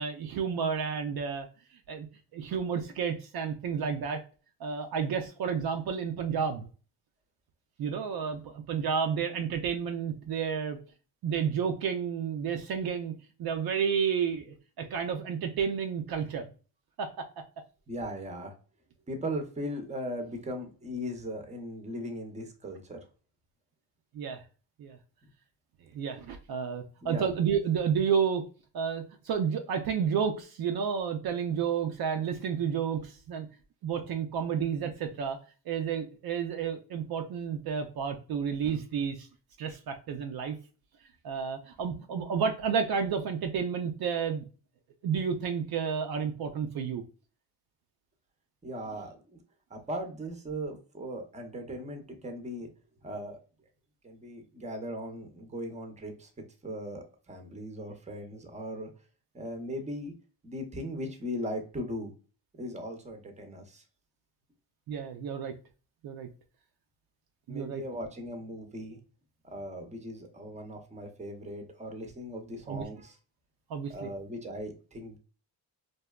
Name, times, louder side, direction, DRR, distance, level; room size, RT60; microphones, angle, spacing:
voice 1, 0.0-1.5 1.9-2.1 2.3-4.2 4.6-6.7 7.8-10.8 11.2-13.1 13.4-16.4 17.0-17.3 24.1-24.4 24.8-25.0 25.9-28.4 28.7-33.5 33.8-35.4 35.7-39.3 39.6-40.6 41.2-44.4 45.0-47.0 64.9-65.5 66.0-66.3 67.5-67.8 72.7-72.9 73.7-74.1, right 7 dB, 60° right, 5 dB, 0.5 m, -31 dB
voice 2, 17.9-18.5 19.1-23.0 27.0-27.3 48.6-49.4 49.7-52.7 53.0-53.4 54.0-56.3 56.6-58.9 59.3-60.1 60.4-62.1 62.6-63.8 67.5-69.0 69.4-73.2 73.9-75.2, equal, 15° right, 5 dB, 0.7 m, -38 dB
2.7 x 2.2 x 2.2 m, 0.36 s
cardioid pair, 75°, 41 cm